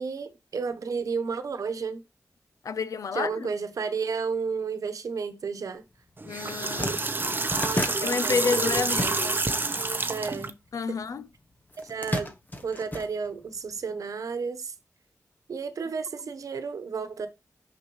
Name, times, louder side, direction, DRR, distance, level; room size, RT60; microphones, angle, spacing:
voice 1, 0.0-2.0 3.1-5.8 6.8-7.0 7.5-8.7 9.2-10.5 10.9-11.0 11.8-12.3 12.6-14.7 15.5-17.3, right 5 dB, 80° right, 1.0 m, -32 dB
voice 2, 2.6-3.5 6.2-7.0 7.6-9.4 10.7-11.3, left 5 dB, 75° left, 0.5 m, -30 dB
sound 1, 6.0-6.2 6.4-9.6 9.9-11.1 11.7-13.7, left 1 dB, 30° left, 1.2 m, -33 dB
sound 2, 6.2-10.5, right 3 dB, 35° right, 0.8 m, -28 dB
5.9 x 5.8 x 3.1 m
cardioid pair, 50°, 6 cm